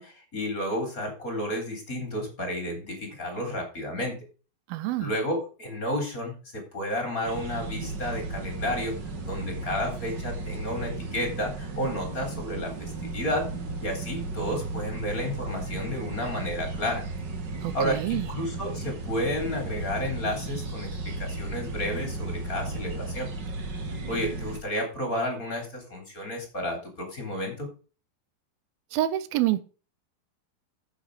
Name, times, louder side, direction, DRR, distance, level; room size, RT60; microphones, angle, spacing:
voice 1, 0.0-4.1 5.0-8.9 9.3-13.5 13.8-17.0 17.7-23.3 24.1-27.7, left 1 dB, 25° left, 3.8 m, -31 dB
voice 2, 4.7-5.2 17.6-18.3 28.9-29.6, right 14 dB, 85° right, 2.6 m, -27 dB
sound 1, 7.2-24.6, right 3 dB, 45° right, 1.6 m, -35 dB
9.9 x 8.1 x 4.9 m
omnidirectional pair, 4.2 m